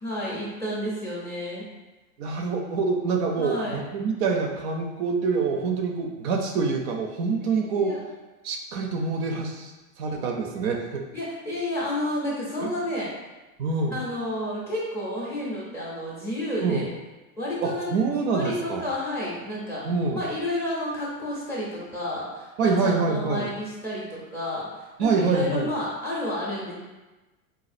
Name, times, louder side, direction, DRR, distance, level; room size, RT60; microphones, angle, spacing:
voice 1, 0.0-1.6 3.4-3.8 7.4-8.0 11.1-13.1 13.9-16.9 17.4-19.8 20.1-26.7, left 1 dB, 5° left, -7 dB, 0.5 m, -31 dB
voice 2, 2.2-7.9 8.4-9.7 10.0-11.0 12.6-12.7 13.6-14.0 16.6-16.9 17.6-18.8 19.8-20.3 22.6-23.5 25.0-25.7, right 4 dB, 50° right, 2 dB, 0.5 m, -26 dB
4.1 x 2.4 x 2.4 m, 1.1 s
supercardioid pair, 145°, 42 cm